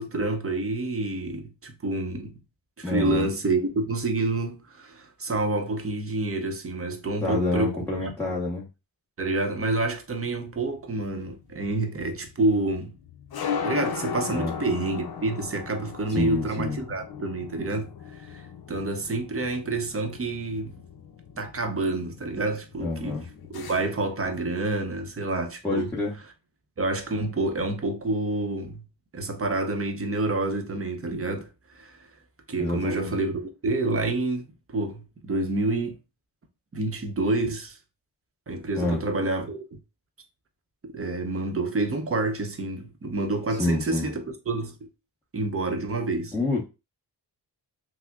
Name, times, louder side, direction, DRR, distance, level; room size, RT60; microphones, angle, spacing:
voice 1, 0.0-2.3 2.8-8.1 9.2-12.9 13.6-17.9 18.3-20.8 21.4-25.9 26.8-28.8 29.1-32.0 32.5-36.0 36.7-37.8 38.5-39.8 40.8-44.9 45.3-46.3, right 2 dB, 35° right, 0.7 m, -28 dB
voice 2, 2.8-3.3 7.2-8.7 14.3-14.5 16.1-16.8 22.8-23.2 25.6-26.2 32.6-33.1 38.8-39.0 43.6-44.1 46.3-46.6, left 2 dB, 5° left, 0.9 m, -27 dB
sound 1, 10.5-24.4, left 7 dB, 65° left, 0.6 m, -38 dB
5.9 x 2.0 x 2.3 m
wide cardioid pair, 105°, 41 cm